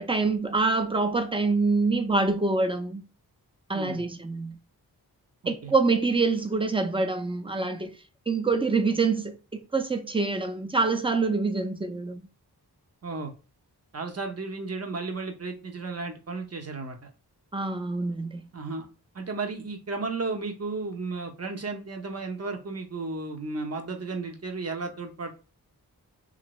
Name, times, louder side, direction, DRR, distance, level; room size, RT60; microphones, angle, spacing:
voice 1, 0.0-3.0 3.7-4.6 5.5-7.9 8.3-12.2 17.5-18.5, right 3 dB, 15° right, 0.5 m, -26 dB
voice 2, 3.7-4.0 5.4-5.7 13.0-13.3 13.9-17.1 18.5-18.9 19.1-25.3, right 3 dB, 40° right, 0.8 m, -34 dB
2.8 x 2.6 x 3.0 m
cardioid pair, 45°, 39 cm